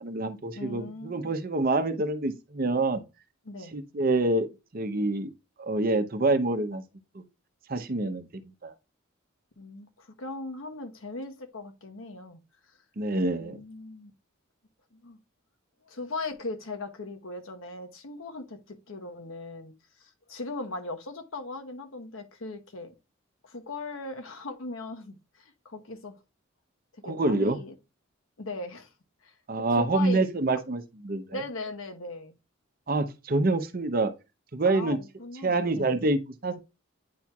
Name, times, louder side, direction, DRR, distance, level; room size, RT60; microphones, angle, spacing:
voice 1, 0.0-3.0 3.7-4.5 4.7-5.3 5.6-6.8 7.1-7.2 7.7-8.3 8.6-8.7 13.0-13.6 27.0-27.6 29.5-31.4 32.9-34.1 34.5-35.0 35.4-36.6, right 2 dB, 45° right, 0.7 m, -26 dB
voice 2, 0.5-1.3 3.4-3.7 9.6-12.8 13.4-14.1 14.9-15.2 15.8-22.9 23.4-26.2 26.9-27.7 28.4-28.9 29.2-29.4 29.8-30.2 31.3-32.3 34.6-36.0, left 2 dB, 80° left, 1.0 m, -39 dB
9.4 x 4.4 x 2.3 m
head